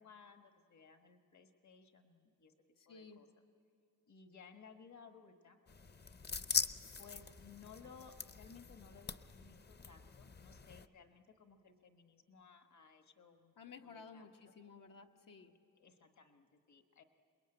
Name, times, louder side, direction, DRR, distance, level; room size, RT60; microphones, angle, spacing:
voice 1, 0.0-2.5 2.9-3.3 4.1-5.6 7.0-13.5 13.8-14.5 15.8-17.0, left 6 dB, 60° left, 7 dB, 1.4 m, -59 dB
voice 2, 2.8-3.2 13.6-15.5, left 5 dB, 85° left, 2 dB, 1.4 m, -55 dB
sound 1, 5.7-10.9, left 5 dB, 30° left, 0.6 m, -42 dB
28.0 x 21.0 x 8.9 m, 2.7 s
wide cardioid pair, 140°, 32 cm